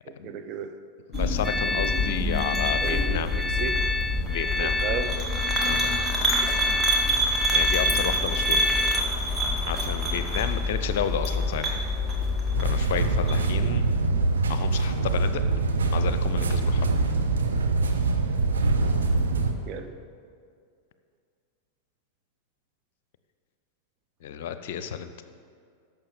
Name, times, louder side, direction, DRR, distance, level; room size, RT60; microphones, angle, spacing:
voice 1, 0.1-0.7 2.8-3.8 4.6-5.1 19.7-19.9, right 8 dB, 40° right, 7 dB, 0.8 m, -34 dB
voice 2, 1.1-3.3 4.3-4.8 5.6-5.9 7.5-8.6 9.7-11.6 12.6-14.0 14.5-15.4 15.8-16.9 24.2-25.1, left 9 dB, 55° left, 11 dB, 0.7 m, -31 dB
sound 1, 1.1-13.5, left 1 dB, 10° right, 2.1 m, -26 dB
sound 2, 1.4-9.0, left 2 dB, 10° left, 0.3 m, -29 dB
sound 3, 12.5-19.5, right 3 dB, 70° right, 0.9 m, -24 dB
11.5 x 7.1 x 7.0 m, 2.2 s
figure-of-eight pair, 90°, 0 cm